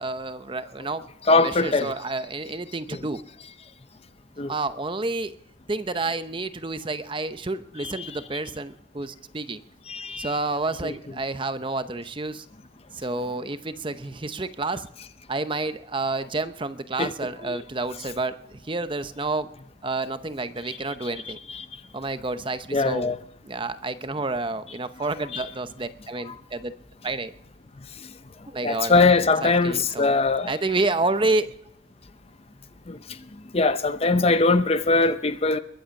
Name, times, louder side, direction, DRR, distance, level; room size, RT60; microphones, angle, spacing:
voice 1, 0.0-3.2 4.5-5.4 5.7-9.6 10.2-12.5 12.9-14.9 15.3-19.5 19.8-21.4 21.9-23.2 23.4-26.7 27.0-27.3 28.5-29.1 29.4-30.1 30.5-31.5, right 3 dB, 25° right, 0.7 m, -29 dB
voice 2, 1.3-1.9 4.4-4.5 9.9-10.3 17.0-17.1 17.5-17.6 22.7-23.2 28.6-30.5 32.9-33.0 33.5-35.6, left 3 dB, 30° left, 0.6 m, -21 dB
22.0 x 7.9 x 7.1 m
head